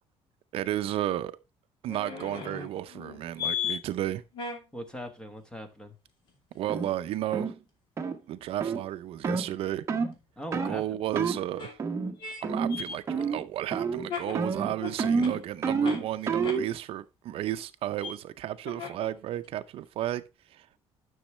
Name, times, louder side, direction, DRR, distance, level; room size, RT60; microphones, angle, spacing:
voice 1, 0.5-1.3 1.8-4.2 6.5-7.5 8.3-9.8 10.5-11.8 12.4-20.2 20.5-20.7, right 13 dB, 65° right, 0.5 m, -33 dB
sound 1, 1.9-3.8 4.3-4.6 8.4-8.5 10.1-10.2 11.6-11.7 12.2-12.4 12.7-16.0 16.4-16.6 18.0-18.1 18.7-19.1 19.4-19.5, left 7 dB, 50° left, 2.6 m, -36 dB
voice 2, 4.7-5.9 10.4-11.0, equal, 10° left, 1.2 m, -40 dB
sound 2, 6.7-6.9 7.3-7.6 8.0-8.2 8.6-8.8 9.2-9.5 9.9-10.1 10.5-10.8 11.2-11.4 11.8-12.2 12.4-12.8 13.1-13.5 13.7-14.1 14.4-16.7, right 5 dB, 25° right, 0.9 m, -28 dB
10.5 x 6.3 x 3.1 m
cardioid pair, 160°, 11 cm